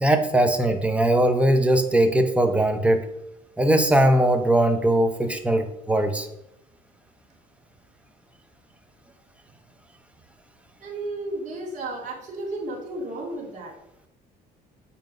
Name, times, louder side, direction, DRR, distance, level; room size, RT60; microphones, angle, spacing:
voice 1, 0.0-3.1 3.6-6.3, right 1 dB, 5° right, 6 dB, 1.0 m, -20 dB
voice 2, 10.8-13.7, right 2 dB, 50° right, -2 dB, 2.9 m, -33 dB
7.7 x 4.5 x 5.3 m, 0.80 s
cardioid pair, 110°, 17 cm